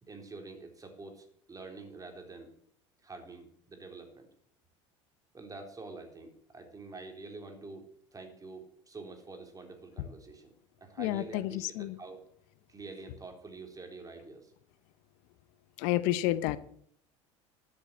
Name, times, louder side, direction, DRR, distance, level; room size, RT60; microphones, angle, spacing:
voice 1, 0.0-2.5 3.0-4.3 5.3-10.5 10.8-12.2 12.7-14.5, right 3 dB, 20° right, 4 dB, 4.0 m, -47 dB
voice 2, 11.0-11.5 11.8-12.0 15.8-16.6, left 15 dB, 65° left, 16 dB, 0.8 m, -29 dB
13.0 x 7.8 x 7.6 m, 0.64 s
hypercardioid pair, 75°, 16 cm